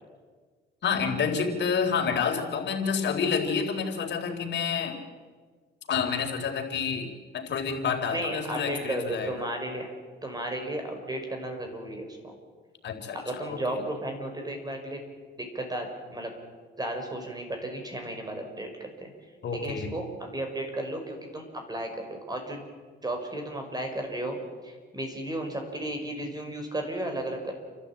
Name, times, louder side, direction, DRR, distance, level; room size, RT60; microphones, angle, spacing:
voice 1, 0.8-5.0 5.9-9.3 12.8-13.8 19.4-20.0, left 6 dB, 60° left, 2 dB, 3.8 m, -29 dB
voice 2, 8.1-9.9 10.2-12.3 13.1-15.0 15.4-16.3 16.8-19.1 19.5-22.6 23.0-24.4 24.6-27.5, right 1 dB, 20° right, 3 dB, 5.6 m, -34 dB
29.5 x 12.5 x 8.9 m, 1.5 s
cardioid pair, 90°, 20 cm